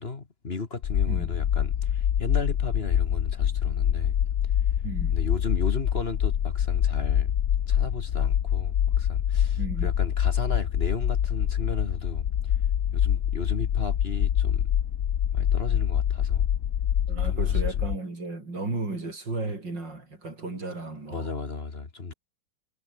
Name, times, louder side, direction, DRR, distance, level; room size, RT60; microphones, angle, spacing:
voice 1, 0.0-4.2 5.1-7.3 7.7-12.5 12.9-14.7 15.3-16.5 17.2-17.6 21.1-22.1, left 4 dB, 30° left, 1.9 m, -35 dB
sound 1, 0.8-18.0, left 10 dB, 60° left, 0.8 m, -25 dB
voice 2, 1.1-1.4 4.8-5.2 9.6-9.9 17.1-21.3, right 3 dB, 55° right, 6.7 m, -34 dB
omnidirectional pair, 2.3 m